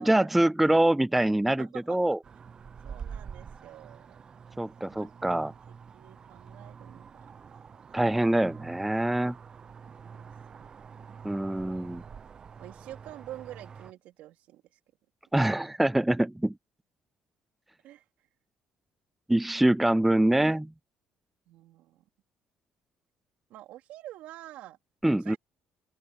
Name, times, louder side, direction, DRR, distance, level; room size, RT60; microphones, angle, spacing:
voice 1, 0.0-2.2 4.6-5.5 7.9-9.4 11.2-12.0 15.3-16.5 19.3-20.7 25.0-25.4, right 1 dB, 5° right, 0.4 m, -24 dB
voice 2, 1.6-2.2 2.8-4.2 4.9-5.3 5.7-7.3 10.0-10.3 10.6-10.7 12.6-14.8 17.8-18.0 21.5-22.0 23.5-24.8 25.2-25.4, right 14 dB, 75° right, 3.8 m, -47 dB
sound 1, 2.2-13.9, right 6 dB, 35° right, 0.7 m, -46 dB
cardioid pair, 130°, 2 cm